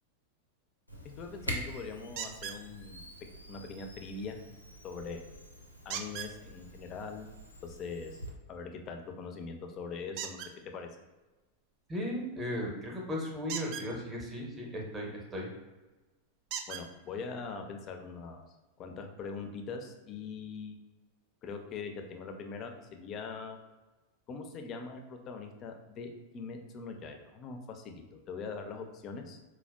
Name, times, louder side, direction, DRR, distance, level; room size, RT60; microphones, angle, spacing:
Camera, 0.9-8.3, equal, 90° left, 0.5 m, -45 dB
voice 1, 1.2-3.0 3.5-4.4 4.8-5.2 5.8-7.3 7.6-8.2 8.5-10.9 16.7-18.4 18.8-20.8 21.4-23.6 24.3-29.4, left 4 dB, 35° left, 5 dB, 0.4 m, -42 dB
sound 1, 2.2-2.6 5.9-6.3 10.1-10.5 13.4-13.9 15.5-15.6 16.5-16.8 17.8-17.9 18.4-18.5, right 8 dB, 40° right, 0.3 m, -38 dB
voice 2, 11.9-15.5, equal, 15° right, -1 dB, 0.7 m, -36 dB
4.2 x 2.2 x 2.2 m, 1.2 s
figure-of-eight pair, 90°, 0 cm